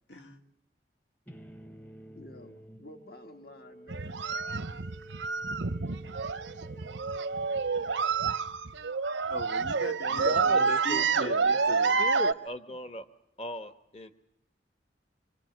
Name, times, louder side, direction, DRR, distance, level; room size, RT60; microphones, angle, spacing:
voice 1, 0.1-0.4 9.3-12.0, equal, 85° left, 4 dB, 2.7 m, -39 dB
sound 1, 1.3-9.2, right 2 dB, 10° left, 0.9 m, -51 dB
voice 2, 2.1-4.2 12.7-12.8, left 2 dB, 55° left, 7 dB, 1.7 m, -51 dB
sound 2, 3.9-12.3, right 5 dB, 90° right, 0.9 m, -28 dB
voice 3, 10.1-11.6 12.0-13.0 13.4-14.1, left 1 dB, 35° left, 9 dB, 1.2 m, -38 dB
25.5 x 25.0 x 7.8 m, 0.78 s
head